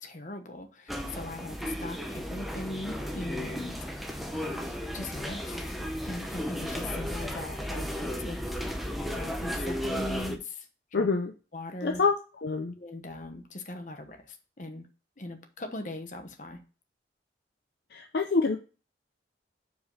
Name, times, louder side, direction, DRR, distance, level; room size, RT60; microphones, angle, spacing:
voice 1, 0.0-3.7 4.3-4.7 4.9-5.8 6.0-11.1 11.5-12.0 12.7-14.9 15.2-16.6, left 2 dB, 45° left, 6 dB, 1.0 m, -40 dB
sound 1, 0.9-10.4, equal, ahead, 0.7 m, -34 dB
voice 2, 10.9-11.3 11.8-12.1 12.4-12.7 17.9-18.6, left 4 dB, 65° left, 4 dB, 0.6 m, -26 dB
5.1 x 4.8 x 5.5 m, 0.34 s
head